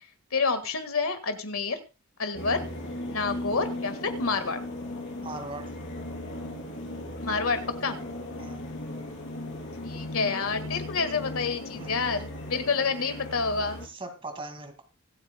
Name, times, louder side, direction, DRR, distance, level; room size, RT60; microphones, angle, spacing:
voice 1, 0.3-1.8 2.2-2.6 3.1-4.6 7.2-8.0 9.8-13.9, left 4 dB, 75° left, 9 dB, 1.8 m, -28 dB
sound 1, 2.3-13.9, left 1 dB, 55° left, 3.6 m, -37 dB
voice 2, 5.2-5.7 8.4-8.6 11.8-12.1 13.8-14.8, right 2 dB, 25° right, 6 dB, 2.1 m, -39 dB
25.0 x 8.6 x 2.3 m, 0.30 s
head